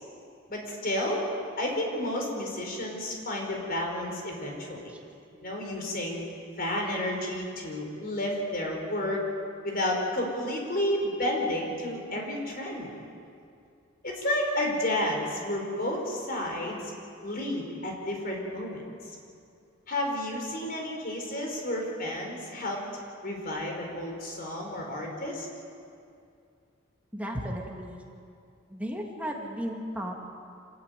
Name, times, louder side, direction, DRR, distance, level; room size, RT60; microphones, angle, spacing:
voice 1, 0.5-1.3 1.6-4.9 5.4-6.3 6.6-9.2 9.6-12.9 14.0-16.9 17.2-18.8 19.9-22.8 23.2-25.5, left 1 dB, 45° left, 0 dB, 4.6 m, -31 dB
voice 2, 5.3-5.8 27.1-28.0 28.7-30.1, equal, 5° right, -1 dB, 2.6 m, -35 dB
26.0 x 14.0 x 9.4 m, 2.4 s
head